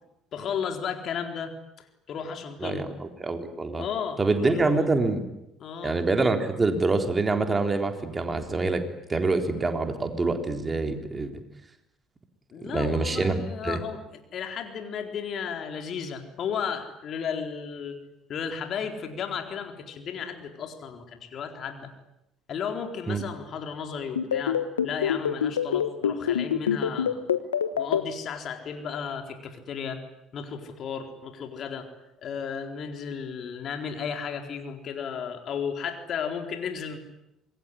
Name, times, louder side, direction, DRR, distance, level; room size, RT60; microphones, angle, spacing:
voice 1, 0.3-2.8 3.8-4.8 5.6-6.0 12.5-14.0 14.3-18.0 18.3-21.9 22.5-27.2 27.8-30.0 30.3-31.9 32.2-37.0, left 7 dB, 50° left, 5 dB, 4.1 m, -34 dB
voice 2, 2.6-3.9 4.2-5.2 5.8-8.8 9.1-11.3 12.6-13.8 23.1-23.2, right 3 dB, 25° right, 6 dB, 3.9 m, -26 dB
sound 1, 24.2-28.0, left 9 dB, 85° left, 1.2 m, -24 dB
26.5 x 22.0 x 9.9 m, 0.87 s
hypercardioid pair, 55°, 0 cm